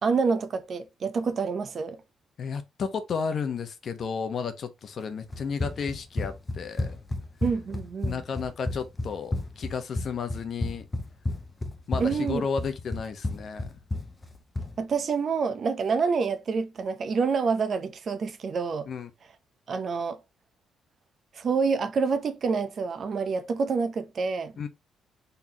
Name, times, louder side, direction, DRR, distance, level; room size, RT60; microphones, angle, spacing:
voice 1, 0.0-2.0 7.4-8.2 12.0-12.4 14.8-18.9 19.7-20.2 21.3-24.6, right 5 dB, 50° right, 0.7 m, -27 dB
voice 2, 2.4-7.0 8.0-10.9 11.9-13.8 18.9-19.1 24.6-24.7, left 6 dB, 55° left, 0.9 m, -33 dB
Run, 5.3-14.8, left 2 dB, 20° left, 0.9 m, -32 dB
4.1 x 3.4 x 2.8 m
cardioid pair, 90°, 0 cm